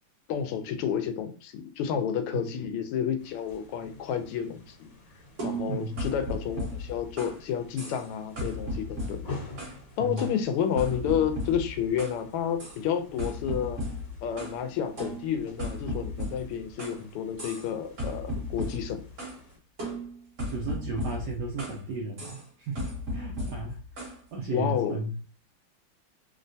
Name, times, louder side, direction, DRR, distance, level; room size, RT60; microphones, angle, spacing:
voice 1, 0.3-4.9 5.4-9.4 10.0-13.8 14.2-19.0 24.5-25.0, left 8 dB, 90° left, 7 dB, 1.5 m, -30 dB
sound 1, 3.2-19.6, left 2 dB, 60° left, 1.5 m, -49 dB
sound 2, 5.4-7.4 7.8-8.1 8.4-9.8 10.2-12.2 12.6-12.8 13.2-14.6 15.0-17.0 17.4-17.7 18.0-19.4 19.8-21.8 22.2-22.4 22.8-24.2, left 1 dB, 45° right, 1.1 m, -35 dB
voice 2, 5.7-6.0 10.0-10.2 20.5-22.8 23.1-25.2, right 2 dB, 80° right, -1 dB, 0.9 m, -35 dB
3.7 x 2.2 x 2.6 m, 0.37 s
omnidirectional pair, 2.4 m